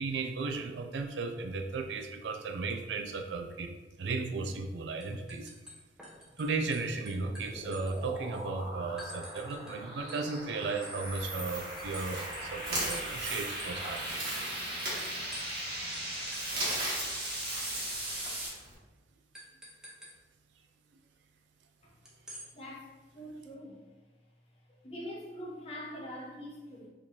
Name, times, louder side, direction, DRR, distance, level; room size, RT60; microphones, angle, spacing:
voice 1, 0.0-3.7 4.0-5.5 6.4-14.2, right 4 dB, 75° right, 5 dB, 0.4 m, -35 dB
sound 1, 4.4-4.7 5.0-6.4 6.7-8.4 9.0-9.8 10.1-15.6 15.9-16.0 16.3-17.8 18.1-18.2 18.5-18.7 19.3-20.1 22.1-22.5, equal, 5° right, 0.7 m, -49 dB
sound 2, 7.3-18.5, right 1 dB, 30° right, 1.1 m, -40 dB
sound 3, 11.0-18.7, right 1 dB, 60° right, 1.4 m, -39 dB
voice 2, 22.5-23.8 24.8-26.9, equal, 35° left, -4 dB, 1.0 m, -43 dB
4.1 x 3.1 x 2.7 m, 1.2 s
head